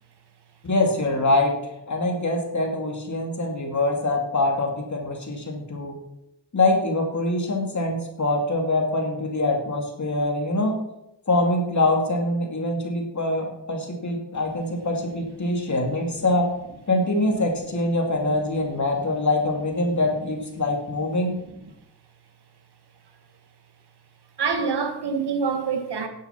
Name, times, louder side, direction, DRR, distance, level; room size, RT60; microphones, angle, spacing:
voice 1, 0.6-6.0 6.5-10.7 11.3-16.5 16.9-21.4, left 2 dB, 45° left, 2.5 m, -24 dB
voice 2, 24.4-26.1, right 5 dB, 80° right, 1.8 m, -26 dB
10.0 x 8.1 x 5.9 m
cardioid pair, 75°, 40 cm